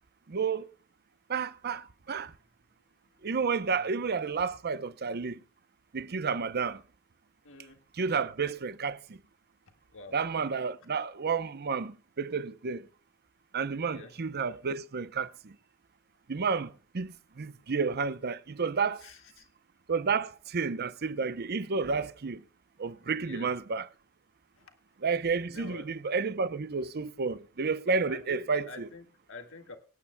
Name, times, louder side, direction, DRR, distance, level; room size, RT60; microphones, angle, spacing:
voice 1, 0.3-0.6 1.3-2.3 3.2-5.4 5.9-6.8 8.0-9.2 10.1-12.8 13.5-15.5 16.3-16.7 16.9-19.0 19.9-22.4 22.8-23.9 25.0-28.9, right 5 dB, 45° right, 0.7 m, -31 dB
voice 2, 7.4-7.8 9.9-10.2 13.9-14.2 19.0-19.5 23.2-23.5 25.5-25.9 28.1-29.8, left 3 dB, 65° left, 1.8 m, -47 dB
24.5 x 9.7 x 2.2 m
head